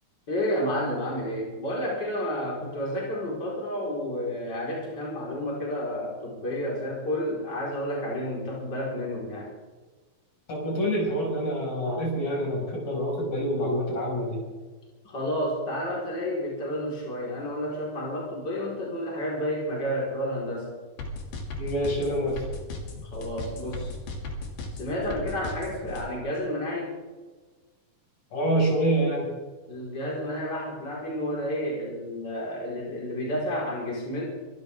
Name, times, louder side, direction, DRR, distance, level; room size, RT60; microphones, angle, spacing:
voice 1, 0.3-9.5 15.0-20.7 23.1-23.9 24.7-27.0 29.7-34.3, equal, 25° left, -4 dB, 4.9 m, -31 dB
voice 2, 10.5-14.4 21.6-22.5 28.3-29.3, right 1 dB, 60° left, -3 dB, 7.3 m, -26 dB
sound 1, 21.0-26.0, left 3 dB, 85° left, 4.4 m, -36 dB
24.5 x 15.0 x 3.6 m, 1.3 s
omnidirectional pair, 4.3 m